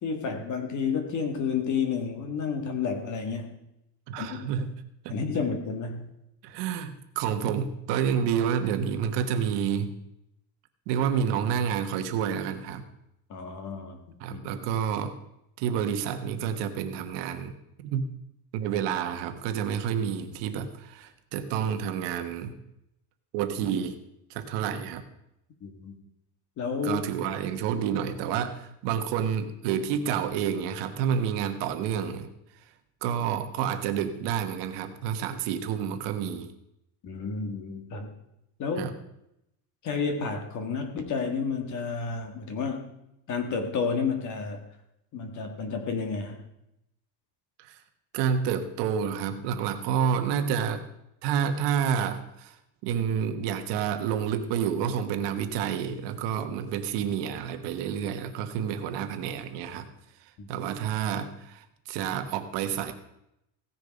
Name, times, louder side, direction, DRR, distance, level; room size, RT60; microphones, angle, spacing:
voice 1, 0.0-3.6 4.2-4.5 5.1-6.1 13.3-14.4 25.6-26.0 26.6-27.0 37.0-38.1 38.6-38.9 39.8-42.9 43.3-44.6 45.1-46.4 60.4-60.5, left 5 dB, 40° left, 5 dB, 1.7 m, -31 dB
voice 2, 4.1-4.8 5.0-5.2 6.4-9.9 10.9-12.8 14.2-15.1 15.6-18.0 18.5-22.5 23.3-24.0 24.3-25.0 26.8-32.3 33.0-36.5 38.8-38.9 47.6-47.8 48.1-50.9 51.2-52.6 52.8-59.9 60.2-62.9, right 8 dB, 60° right, 8 dB, 1.3 m, -29 dB
16.5 x 6.7 x 5.2 m, 0.82 s
cardioid pair, 170°, 47 cm